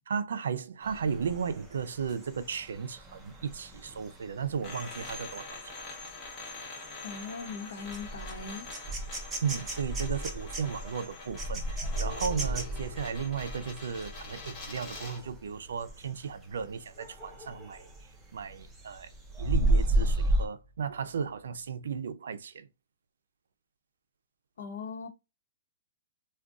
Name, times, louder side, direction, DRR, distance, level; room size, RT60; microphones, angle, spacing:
voice 1, 0.1-5.7 9.4-17.9 18.3-19.1 19.4-22.7, right 6 dB, 85° right, 0.4 m, -35 dB
sound 1, 0.8-15.4 15.8-16.1 16.4-18.1 18.5-20.5, right 1 dB, 10° right, 0.5 m, -34 dB
sound 2, 4.6-15.3, left 3 dB, 15° left, 0.8 m, -45 dB
voice 2, 7.0-8.7 24.6-25.1, left 5 dB, 70° left, 1.0 m, -40 dB
sound 3, 11.9-22.1, left 3 dB, 35° left, 1.4 m, -53 dB
2.5 x 2.2 x 3.6 m
hypercardioid pair, 180°, 0 cm